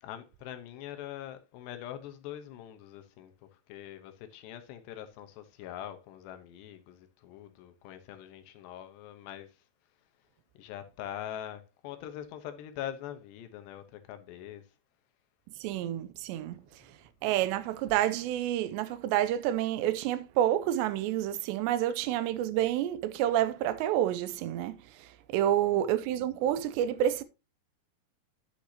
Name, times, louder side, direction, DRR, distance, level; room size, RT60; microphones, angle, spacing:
voice 1, 0.0-3.3 3.7-9.6 10.6-14.6 25.4-25.8, left 11 dB, 75° left, 3.0 m, -43 dB
voice 2, 15.6-16.8 17.2-27.2, right 12 dB, 80° right, 2.7 m, -29 dB
9.9 x 9.0 x 2.8 m
omnidirectional pair, 5.2 m